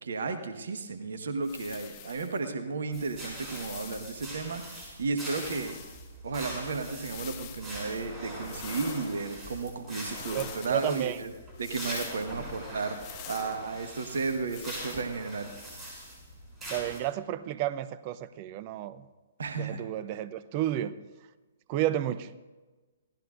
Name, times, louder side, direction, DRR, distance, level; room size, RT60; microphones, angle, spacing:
voice 1, 0.0-5.8 6.2-11.3 11.6-15.5 19.4-19.8 20.1-20.2, right 4 dB, 60° right, 1.4 m, -33 dB
sound 1, 1.4-2.4 3.2-4.2 5.2-6.1 6.9-7.7 8.4-9.3 10.0-10.8 11.6-12.3 12.9-13.6 14.5-15.1, left 11 dB, 35° left, 1.7 m, -46 dB
sound 2, 2.9-17.0, right 1 dB, 15° right, 6.9 m, -42 dB
voice 2, 10.3-11.2 16.7-19.0 19.6-21.0 21.7-22.3, right 12 dB, 35° right, 0.7 m, -31 dB
27.0 x 17.5 x 2.6 m
figure-of-eight pair, 120°, 0 cm